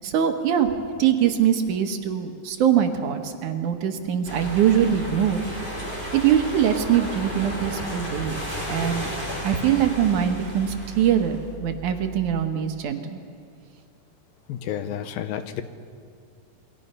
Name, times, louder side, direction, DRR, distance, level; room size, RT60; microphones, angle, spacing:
voice 1, 0.0-0.7 1.0-5.4 6.1-8.4 8.7-9.1 9.4-13.2, right 9 dB, 65° right, 6 dB, 2.5 m, -22 dB
sound 1, 4.2-12.4, equal, 15° left, 4.6 m, -33 dB
voice 2, 14.5-15.6, left 10 dB, 85° left, 10 dB, 2.8 m, -30 dB
28.0 x 22.0 x 5.5 m, 2.3 s
omnidirectional pair, 4.0 m